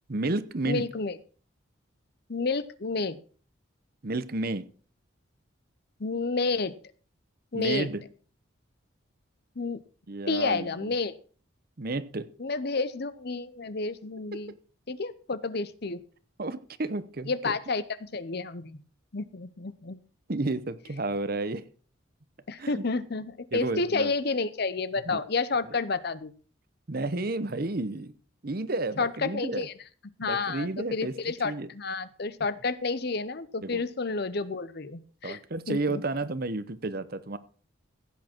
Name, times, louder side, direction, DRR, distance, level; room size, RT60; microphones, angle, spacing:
voice 1, 0.1-0.8 4.0-4.6 7.5-8.0 10.1-10.9 11.8-12.3 14.5-14.6 16.4-17.5 20.3-21.6 22.6-22.8 23.5-24.1 25.0-25.2 25.7-25.8 26.9-28.1 28.4-29.7 30.2-31.1 31.4-31.7 33.6-33.8 35.2-37.4, right 2 dB, 50° right, 14 dB, 0.9 m, -31 dB
voice 2, 0.7-1.2 2.3-3.2 6.0-6.7 7.5-7.9 9.6-9.8 10.3-11.1 12.4-14.5 14.9-16.0 17.3-17.8 18.1-18.8 19.1-20.0 22.5-26.3 29.0-29.7 30.2-35.4 35.7-36.0, left 4 dB, 55° left, 15 dB, 0.8 m, -30 dB
15.5 x 8.6 x 4.5 m, 0.41 s
head